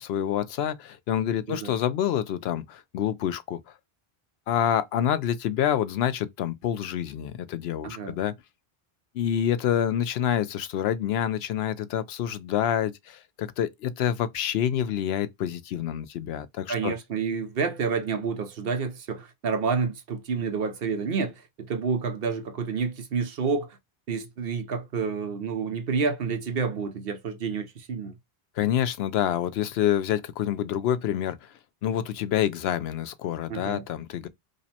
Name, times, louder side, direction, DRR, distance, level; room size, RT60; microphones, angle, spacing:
voice 1, 0.0-3.6 4.5-8.3 9.1-16.9 28.6-31.5 31.8-34.3, left 10 dB, 80° left, 0.8 m, -27 dB
voice 2, 7.8-8.2 16.7-23.7 24.1-28.1 33.5-33.8, right 5 dB, 70° right, 0.9 m, -29 dB
5.1 x 2.1 x 2.7 m
omnidirectional pair, 1.0 m